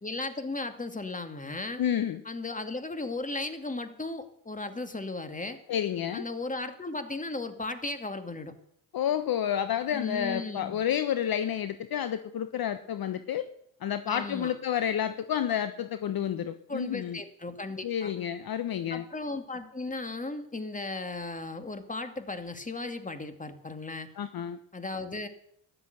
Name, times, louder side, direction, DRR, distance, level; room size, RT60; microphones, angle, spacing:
voice 1, 0.0-1.8 2.2-5.6 6.1-8.5 9.9-10.9 14.1-14.5 16.7-18.1 18.9-24.1 24.7-25.3, left 2 dB, 15° left, 8 dB, 2.4 m, -36 dB
voice 2, 1.8-2.2 5.7-6.2 8.9-13.5 13.8-17.2 17.8-19.0 24.2-24.6, left 9 dB, 45° left, 11 dB, 1.2 m, -30 dB
13.5 x 11.5 x 8.0 m, 0.68 s
hypercardioid pair, 60°, 48 cm